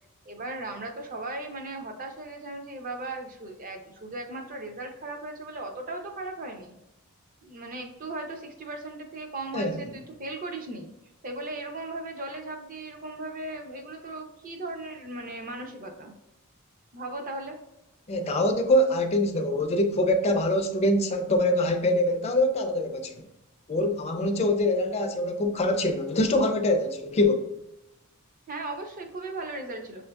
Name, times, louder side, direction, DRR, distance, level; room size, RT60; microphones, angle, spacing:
voice 1, 0.2-6.7 7.4-10.9 11.2-16.1 16.9-17.6 28.5-30.1, right 2 dB, 40° right, 0.5 m, -37 dB
voice 2, 18.1-23.2 23.7-27.5, left 1 dB, 30° left, 0.4 m, -24 dB
6.4 x 2.6 x 2.2 m
head